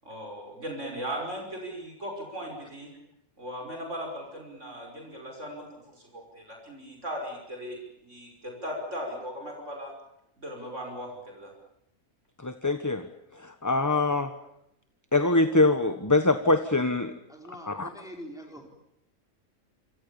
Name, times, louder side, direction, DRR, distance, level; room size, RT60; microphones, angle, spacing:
voice 1, 0.0-2.9 3.4-9.9 10.4-11.5, equal, 55° right, 1 dB, 6.4 m, -38 dB
voice 2, 12.4-13.0 13.4-14.3 15.1-17.1 17.7-17.9, left 2 dB, 15° left, 9 dB, 1.2 m, -24 dB
voice 3, 17.3-18.7, equal, ahead, 2 dB, 4.3 m, -44 dB
28.0 x 26.5 x 7.2 m, 0.80 s
omnidirectional pair, 1.5 m